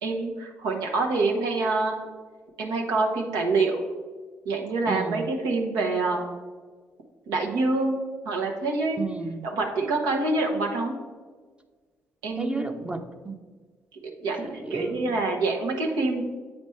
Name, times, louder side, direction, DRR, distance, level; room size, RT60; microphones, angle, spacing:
voice 1, 0.0-2.0 2.6-3.8 4.5-6.3 7.3-9.1 9.4-11.0 12.2-12.7 14.2-14.4 14.7-16.2, right 3 dB, 70° right, 1 dB, 0.9 m, -26 dB
voice 2, 4.9-5.3 9.0-9.4 12.4-13.4 14.4-15.1, right 3 dB, 15° right, 6 dB, 0.8 m, -33 dB
8.6 x 4.3 x 3.1 m, 1.4 s
figure-of-eight pair, 45°, 7 cm